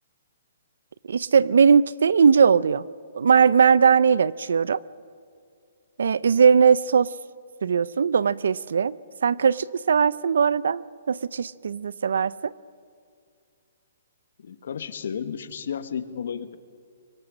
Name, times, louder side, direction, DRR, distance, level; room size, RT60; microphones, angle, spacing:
voice 1, 1.0-2.8 3.1-4.8 6.0-7.1 7.6-12.5, right 6 dB, 85° right, 20 dB, 0.6 m, -19 dB
voice 2, 14.4-16.6, left 7 dB, 70° left, 11 dB, 1.3 m, -33 dB
24.0 x 20.5 x 6.3 m, 2.3 s
hypercardioid pair, 160°, 0 cm